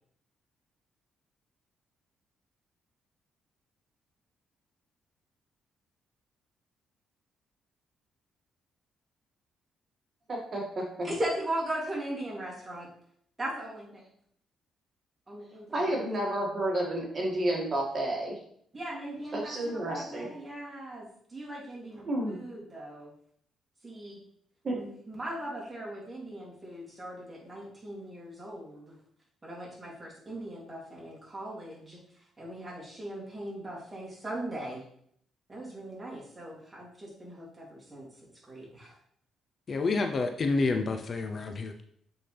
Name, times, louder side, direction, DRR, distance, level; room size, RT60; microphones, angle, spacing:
voice 1, 10.3-11.1 15.7-18.4 19.3-20.3 22.0-22.4 24.6-24.8, right 1 dB, 40° right, -2 dB, 2.0 m, -31 dB
voice 2, 11.0-12.9 13.4-13.9 15.3-15.7 18.7-21.1 21.3-23.1 23.8-24.2 24.7-28.9 29.4-32.0 32.4-34.8 35.5-38.1 38.5-38.9, right 1 dB, 20° right, -4 dB, 2.7 m, -38 dB
voice 3, 39.7-41.8, left 3 dB, 45° left, 6 dB, 0.5 m, -29 dB
7.6 x 3.9 x 3.3 m, 0.66 s
cardioid pair, 90°, 0 cm